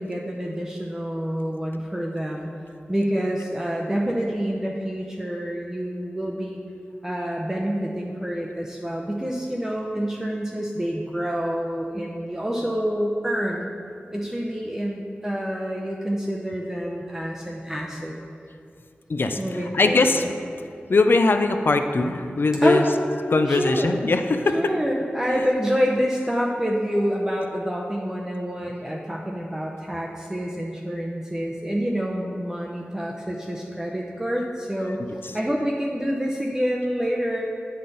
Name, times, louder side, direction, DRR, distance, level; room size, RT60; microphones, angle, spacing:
voice 1, 0.0-2.5 2.9-6.6 7.0-13.7 14.1-18.1 19.4-20.3 22.6-22.9 23.5-23.9 24.5-35.0 35.2-37.4, equal, 10° right, -3 dB, 0.7 m, -27 dB
voice 2, 19.1-20.2 20.9-22.8 23.3-24.6 25.3-25.4 28.6-28.7 35.2-35.3, left 3 dB, 60° left, 7 dB, 0.5 m, -21 dB
8.5 x 5.6 x 4.0 m, 2.4 s
wide cardioid pair, 55°, 4 cm